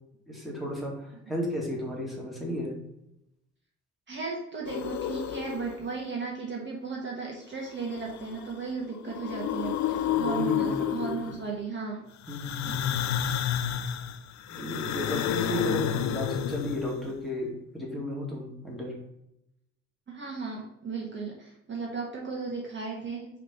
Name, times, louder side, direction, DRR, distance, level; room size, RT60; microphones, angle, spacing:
voice 1, 0.3-2.7 10.1-11.3 12.3-13.1 14.5-18.9, equal, ahead, -3 dB, 2.4 m, -34 dB
voice 2, 4.1-12.0 12.7-12.8 20.1-23.3, right 4 dB, 40° right, -2 dB, 1.4 m, -35 dB
sound 1, 4.7-5.9 7.7-8.6 8.9-11.5 12.2-17.1, left 10 dB, 65° left, 0.5 m, -31 dB
5.0 x 3.4 x 5.6 m, 0.82 s
cardioid pair, 90°, 30 cm